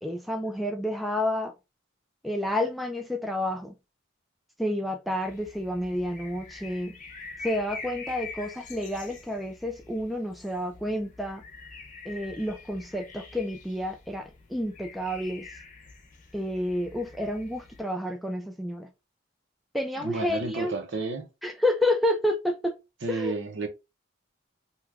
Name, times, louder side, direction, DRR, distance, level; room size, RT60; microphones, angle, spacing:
voice 1, 0.0-1.5 2.2-3.7 4.6-6.9 7.4-11.4 12.0-15.5 16.3-18.9 19.7-20.7 21.4-22.7 23.1-23.3, left 1 dB, ahead, 0.3 m, -30 dB
sound 1, 5.2-17.8, left 4 dB, 40° left, 0.7 m, -45 dB
voice 2, 20.0-21.3 23.0-23.7, right 3 dB, 65° right, 0.8 m, -31 dB
2.8 x 2.3 x 3.3 m
head